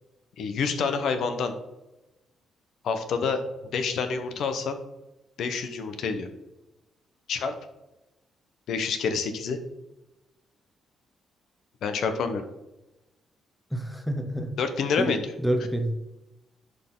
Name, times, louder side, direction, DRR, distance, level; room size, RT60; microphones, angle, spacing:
voice 1, 0.4-1.5 2.8-3.4 3.7-4.8 5.4-6.3 7.3-7.5 8.7-9.6 11.8-12.5 14.6-15.2, left 5 dB, 75° left, 8 dB, 0.9 m, -27 dB
voice 2, 13.7-14.6 15.0-15.9, right 1 dB, 5° left, 7 dB, 0.9 m, -28 dB
11.0 x 4.2 x 3.8 m, 0.97 s
cardioid pair, 100°, 0 cm